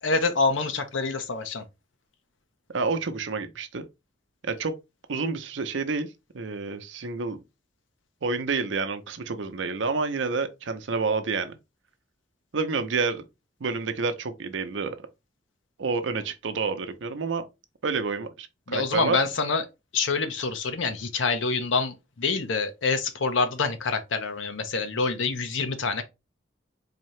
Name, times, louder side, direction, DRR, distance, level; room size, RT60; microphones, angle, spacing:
voice 1, 0.0-1.6 18.7-19.7 19.9-26.0, left 4 dB, 85° left, 0.8 m, -26 dB
voice 2, 2.7-3.8 4.4-4.7 5.1-7.4 8.2-11.6 12.5-13.2 13.6-15.1 15.8-17.4 17.8-19.2, right 4 dB, 75° right, 0.6 m, -29 dB
4.1 x 2.7 x 3.1 m
head